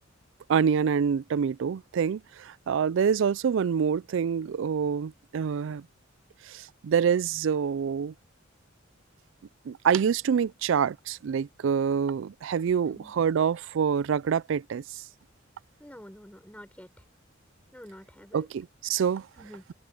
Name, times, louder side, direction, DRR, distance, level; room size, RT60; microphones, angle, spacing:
voice 1, 0.5-5.9 6.4-8.1 9.7-15.0 18.3-19.3, right 7 dB, 65° right, 0.4 m, -26 dB
voice 2, 12.8-13.1 15.8-16.9 17.7-18.5 19.4-19.6, equal, 5° left, 6.9 m, -47 dB
open air
head